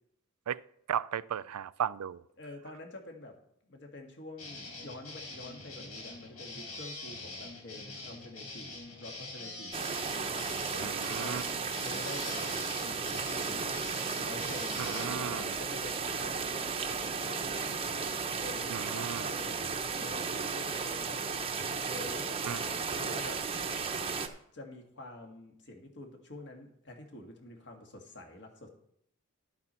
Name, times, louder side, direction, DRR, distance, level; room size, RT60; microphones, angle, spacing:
voice 1, 0.9-2.2 10.8-11.4 14.8-15.4 18.7-19.2 22.5-22.6, right 9 dB, 80° right, 0.4 m, -35 dB
voice 2, 2.4-3.3 3.7-8.7 9.0-9.7 10.3-13.7 14.2-17.8 18.4-21.2 21.8-23.4 24.5-28.7, left 2 dB, 55° left, 1.8 m, -47 dB
sound 1, 4.4-15.1, left 2 dB, 80° left, 4.1 m, -44 dB
sound 2, 9.7-24.3, right 5 dB, 25° right, 0.7 m, -34 dB
12.0 x 8.2 x 4.4 m
head